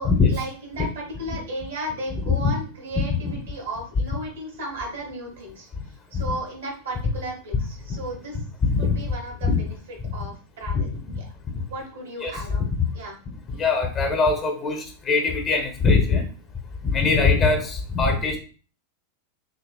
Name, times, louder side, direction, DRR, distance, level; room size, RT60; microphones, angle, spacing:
voice 1, 0.0-5.7 6.1-8.4 8.8-9.8 10.1-10.9 11.2-11.3 11.7-13.2, right 1 dB, 65° right, 0 dB, 1.8 m, -34 dB
voice 2, 8.6-9.1 9.4-9.6 10.0-10.1 10.7-11.1 12.2-12.3 12.8-12.9 13.5-16.3 16.8-18.4, left 4 dB, 25° left, 4 dB, 1.0 m, -22 dB
6.2 x 2.7 x 2.4 m, 0.39 s
figure-of-eight pair, 90°, 0 cm